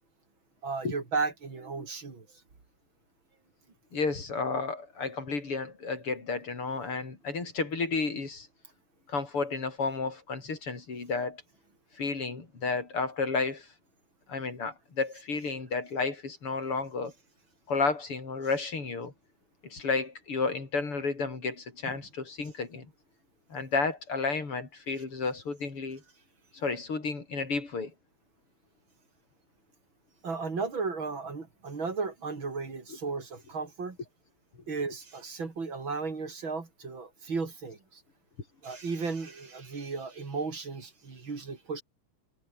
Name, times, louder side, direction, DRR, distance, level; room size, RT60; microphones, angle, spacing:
voice 1, 0.6-2.3 21.9-22.0 30.2-34.0 34.7-38.0 38.6-41.8, right 4 dB, 60° right, 4.4 m, -35 dB
voice 2, 3.9-8.5 9.1-11.4 12.0-13.7 14.3-17.1 17.7-19.1 19.6-22.9 23.5-26.0 26.5-27.9, left 4 dB, 80° left, 5.4 m, -32 dB
omnidirectional pair, 2.4 m